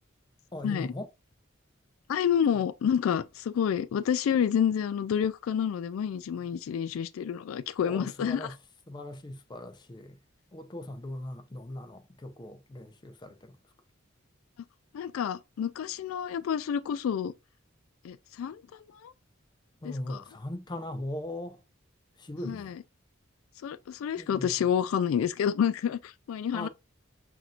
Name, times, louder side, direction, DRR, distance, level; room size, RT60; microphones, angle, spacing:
voice 1, 0.5-1.1 7.8-8.5 8.9-10.2 10.5-13.6 19.8-21.6 22.2-22.7 24.2-24.5 26.5-26.7, left 1 dB, 20° left, 0.5 m, -39 dB
voice 2, 2.1-8.5 14.9-17.3 18.0-18.6 19.0-19.1 19.8-20.2 22.4-22.8 23.6-26.7, left 8 dB, 85° left, 0.3 m, -29 dB
5.9 x 2.6 x 2.4 m
head